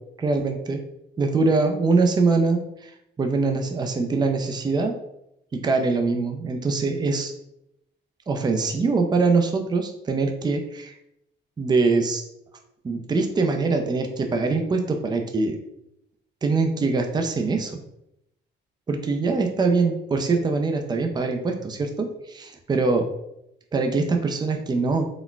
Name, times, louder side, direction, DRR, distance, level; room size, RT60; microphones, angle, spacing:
voice 1, 0.2-0.8 1.2-2.9 3.2-4.9 5.5-7.3 8.3-10.9 11.6-12.2 12.8-15.6 16.4-17.8 18.9-23.1 23.7-25.1, right 3 dB, 20° right, 4 dB, 0.4 m, -23 dB
3.9 x 2.1 x 2.3 m, 0.81 s
cardioid pair, 90°, 20 cm